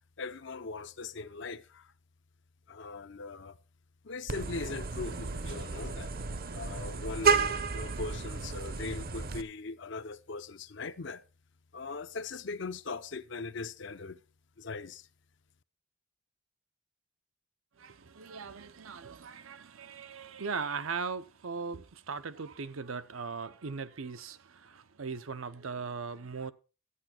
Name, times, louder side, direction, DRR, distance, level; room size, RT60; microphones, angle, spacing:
voice 1, 0.2-1.9 2.7-3.6 4.0-6.1 6.5-11.2 11.7-14.2 14.6-15.1, left 4 dB, 60° left, 0.6 m, -40 dB
Vehicle horn car horn honking, 4.3-9.4, right 5 dB, 45° right, 0.7 m, -32 dB
voice 2, 17.8-26.5, right 5 dB, 80° right, 0.7 m, -39 dB
12.5 x 8.9 x 4.4 m
head